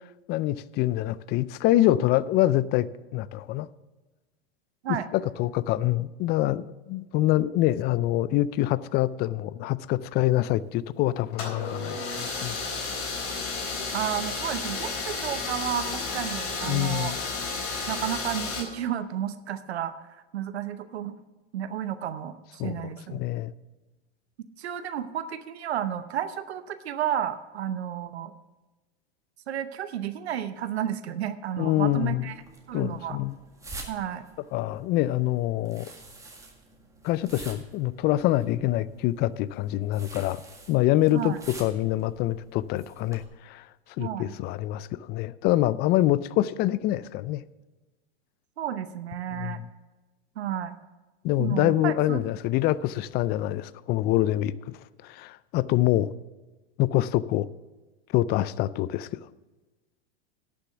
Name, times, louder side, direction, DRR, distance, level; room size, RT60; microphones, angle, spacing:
voice 1, 0.3-3.7 4.9-12.6 16.7-17.2 22.6-23.5 31.6-32.3 32.7-33.4 34.5-35.9 37.0-40.4 40.7-41.3 41.6-43.6 44.0-47.4 49.3-49.6 51.2-54.5 55.0-56.1 56.8-57.5 58.1-59.2, left 15 dB, 30° left, 0.4 m, -25 dB
sound 1, 11.3-18.6, left 4 dB, 60° left, 4.3 m, -32 dB
voice 2, 13.9-17.1 17.9-19.9 20.3-21.2 21.5-23.2 24.6-28.3 29.5-32.3 32.7-33.2 33.9-34.2 41.1-41.4 44.0-44.3 48.6-49.6 50.4-50.8 51.4-52.2, right 10 dB, 85° right, 0.9 m, -32 dB
sound 2, 32.3-43.2, right 2 dB, 10° right, 1.9 m, -48 dB
11.0 x 6.9 x 6.8 m
hypercardioid pair, 115°, 32 cm